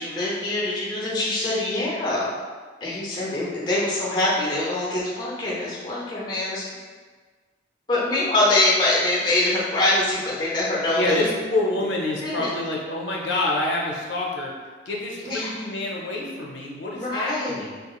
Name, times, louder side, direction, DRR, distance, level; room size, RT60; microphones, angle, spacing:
voice 1, 0.0-2.3 2.8-6.6 7.9-11.2 12.2-12.5 15.2-15.5 16.9-17.6, left 2 dB, 25° left, -5 dB, 0.5 m, -24 dB
voice 2, 10.9-14.5 14.9-17.8, left 2 dB, 75° left, -2 dB, 0.5 m, -27 dB
2.9 x 2.3 x 2.2 m, 1.5 s
head